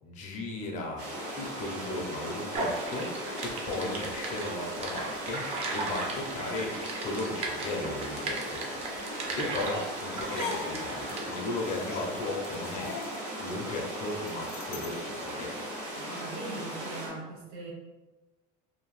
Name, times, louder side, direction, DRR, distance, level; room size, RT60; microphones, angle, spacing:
voice 1, 0.0-3.1 3.4-5.5 5.7-6.7 7.0-8.6 9.4-12.9 13.4-15.7, left 2 dB, 40° left, -1 dB, 0.5 m, -36 dB
sound 1, 1.0-17.1, equal, 85° right, 1.2 m, -38 dB
sound 2, 2.5-11.2, right 3 dB, 30° right, 0.4 m, -37 dB
sound 3, 10.0-15.0, left 4 dB, 85° left, 0.5 m, -41 dB
voice 2, 16.0-17.7, right 3 dB, 55° right, -1 dB, 0.7 m, -41 dB
2.7 x 2.1 x 3.0 m, 1.2 s
cardioid pair, 170°, 20 cm